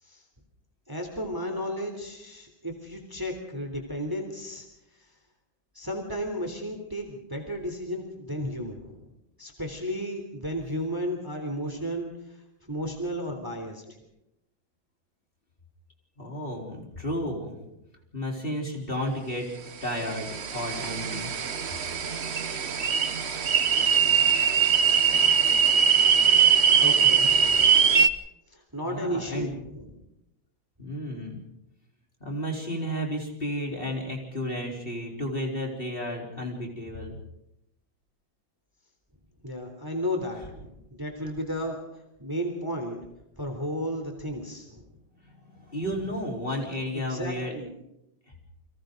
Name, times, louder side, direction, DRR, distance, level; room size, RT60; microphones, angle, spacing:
voice 1, 0.9-4.7 5.8-9.1 9.4-12.4 12.7-14.0 26.8-27.7 28.5-29.9 39.4-41.8 42.2-43.0 43.4-44.9 46.9-47.7, equal, 10° right, 3 dB, 3.3 m, -33 dB
voice 2, 16.2-17.6 18.1-19.5 19.8-21.3 28.8-29.5 30.8-31.4 32.2-37.2 45.2-47.5, equal, 25° left, -1 dB, 4.4 m, -32 dB
sound 1, 19.9-28.1, right 7 dB, 45° right, 0.9 m, -22 dB
30.0 x 25.5 x 4.0 m, 0.85 s
omnidirectional pair, 2.2 m